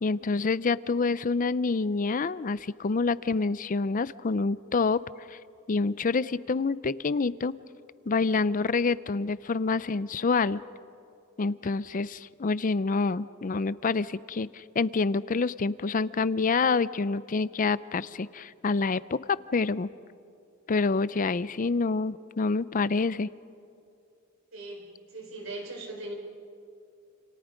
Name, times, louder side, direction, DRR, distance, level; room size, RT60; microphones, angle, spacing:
voice 1, 0.0-5.0 5.3-5.4 5.7-7.5 8.1-10.6 11.4-19.2 19.5-19.9 20.7-23.3, left 4 dB, 40° left, 18 dB, 0.5 m, -27 dB
voice 2, 24.5-26.1, right 2 dB, 75° right, 1 dB, 4.2 m, -39 dB
29.0 x 28.0 x 5.1 m, 2.5 s
head